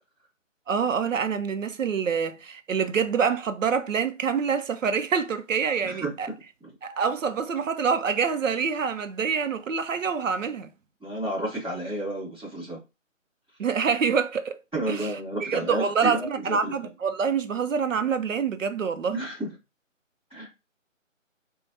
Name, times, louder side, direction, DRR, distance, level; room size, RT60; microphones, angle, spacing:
voice 1, 0.7-6.3 6.8-10.7 13.6-14.6 14.9-15.1 15.4-19.2, right 6 dB, 70° right, 0.6 m, -26 dB
voice 2, 5.8-6.3 6.6-6.7 11.0-12.8 14.7-16.9 19.1-19.6 20.3-20.5, right 1 dB, 5° right, 1.1 m, -31 dB
4.4 x 2.3 x 2.6 m
hypercardioid pair, 170°, 39 cm